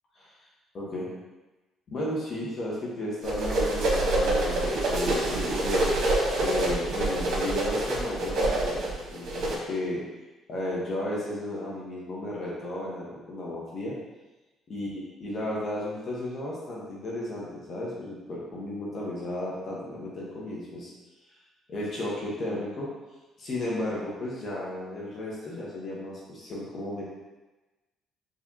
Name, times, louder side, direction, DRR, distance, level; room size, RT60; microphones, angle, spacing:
voice 1, 0.7-1.1 1.9-5.8 6.4-8.8 9.1-10.0 10.5-13.9 14.7-14.9 15.2-20.9 21.7-22.9 23.4-27.0, left 1 dB, 50° left, -6 dB, 1.1 m, -33 dB
sound 1, 3.3-9.6, right 1 dB, 65° right, 1.2 m, -26 dB
5.0 x 3.3 x 2.8 m, 1.1 s
cardioid pair, 90°, 0 cm